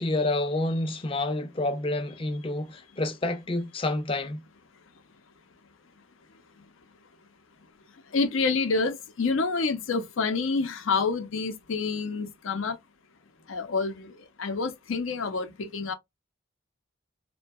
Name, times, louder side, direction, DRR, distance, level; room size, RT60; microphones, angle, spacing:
voice 1, 0.0-4.4, left 2 dB, 25° left, 0.5 m, -28 dB
voice 2, 8.1-12.8 13.5-14.1 14.4-15.9, left 4 dB, 80° left, 0.6 m, -28 dB
2.6 x 2.2 x 2.3 m
head